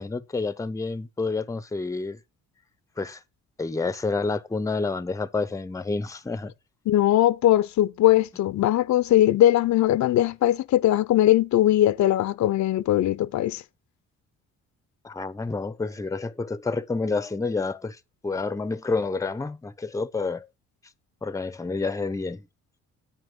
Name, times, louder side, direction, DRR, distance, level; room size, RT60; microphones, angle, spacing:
voice 1, 0.0-2.2 3.0-3.2 3.6-6.5 15.0-18.0 18.2-20.5 21.2-22.5, left 3 dB, 10° left, 0.6 m, -29 dB
voice 2, 6.9-13.6, left 13 dB, 70° left, 0.7 m, -20 dB
9.5 x 8.7 x 3.7 m
cardioid pair, 90°, 30 cm